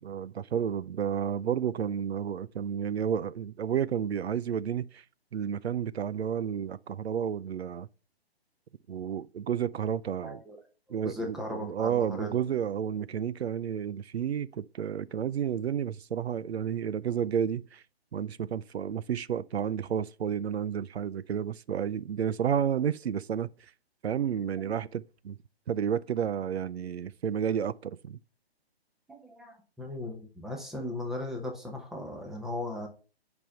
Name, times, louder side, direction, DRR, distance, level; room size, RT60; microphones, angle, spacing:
voice 1, 0.0-5.0 5.3-7.9 8.9-10.4 10.9-17.8 18.1-23.5 24.0-25.4 25.7-28.2, right 8 dB, 85° right, 0.5 m, -31 dB
voice 2, 10.2-10.6 11.0-12.3 24.6-24.7 29.1-32.9, left 1 dB, ahead, 0.9 m, -37 dB
6.3 x 5.3 x 5.4 m
hypercardioid pair, 145°, 31 cm